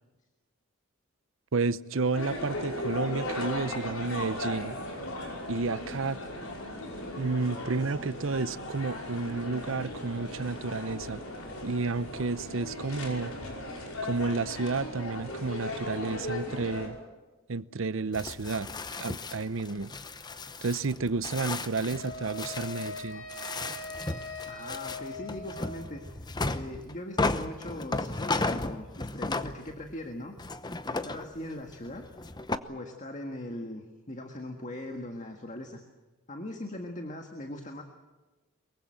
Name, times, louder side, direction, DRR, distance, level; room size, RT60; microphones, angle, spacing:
voice 1, 1.5-4.8 5.5-6.2 7.2-11.2 11.6-13.3 14.0-17.0 17.5-18.7 19.0-19.9 20.6-23.3, right 3 dB, 65° right, 0.7 m, -31 dB
sound 1, 2.1-16.9, left 1 dB, 90° left, 5.9 m, -37 dB
sound 2, 18.1-30.0 30.4-32.6, left 3 dB, 20° left, 0.8 m, -35 dB
Wind instrument woodwind instrument, 21.9-26.0, left 2 dB, 75° left, 7.0 m, -41 dB
voice 2, 24.5-26.0 26.5-30.3 30.8-32.1 32.7-35.8 36.3-37.8, left 1 dB, 35° left, 1.7 m, -40 dB
23.0 x 23.0 x 7.6 m
head